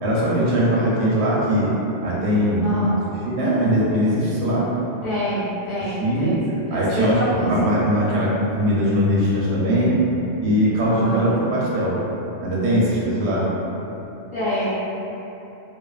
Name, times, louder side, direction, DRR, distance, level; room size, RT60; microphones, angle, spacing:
voice 1, 0.0-1.8 2.0-2.7 3.3-4.7 6.0-6.4 6.7-10.0 10.4-12.0 12.4-13.5, equal, 65° right, -7 dB, 0.8 m, -20 dB
voice 2, 2.6-3.0 5.0-6.4 6.7-7.6 10.8-11.3 14.3-14.7, equal, 45° left, -13 dB, 1.0 m, -26 dB
2.5 x 2.4 x 2.3 m, 3.0 s
omnidirectional pair, 1.3 m